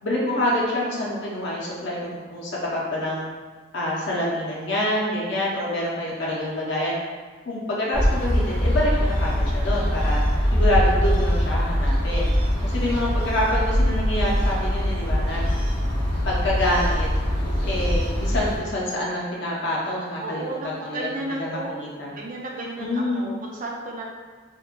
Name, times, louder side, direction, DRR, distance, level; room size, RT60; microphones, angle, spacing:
voice 1, 0.0-3.3 3.7-7.0 7.4-10.2 10.5-12.3 12.6-15.5 16.3-17.1 17.6-21.1 21.4-22.1 22.8-23.3, left 1 dB, 65° left, -4 dB, 0.7 m, -26 dB
sound 1, 7.9-18.6, equal, 30° left, 0.7 m, -22 dB
voice 2, 20.2-21.9 22.1-24.1, right 2 dB, 45° right, -2 dB, 0.4 m, -33 dB
2.9 x 2.3 x 2.5 m, 1.5 s
head